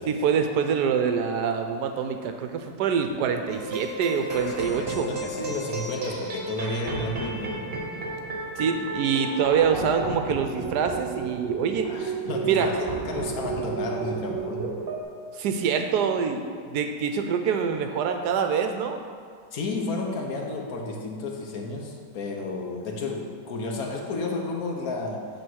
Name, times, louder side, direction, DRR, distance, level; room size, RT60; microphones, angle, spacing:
voice 1, 0.0-5.2 8.6-11.9 12.4-12.7 15.3-16.4 16.7-19.0, right 6 dB, 70° right, 6 dB, 1.1 m, -25 dB
sound 1, 3.5-15.0, right 3 dB, 35° right, 1.1 m, -32 dB
voice 2, 5.0-7.7 11.8-14.8 19.5-25.3, left 2 dB, 60° left, 1 dB, 1.3 m, -32 dB
8.7 x 3.5 x 6.2 m, 2.2 s
omnidirectional pair, 1.9 m